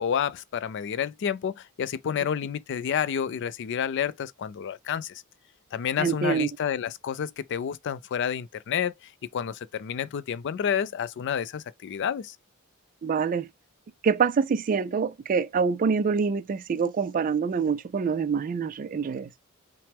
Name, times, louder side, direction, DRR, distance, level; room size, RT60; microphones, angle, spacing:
voice 1, 0.0-5.2 5.7-12.4, left 8 dB, 55° left, 0.3 m, -30 dB
voice 2, 6.0-6.5 13.0-13.5 14.0-19.3, right 5 dB, 40° right, 0.3 m, -25 dB
5.7 x 2.1 x 3.4 m
head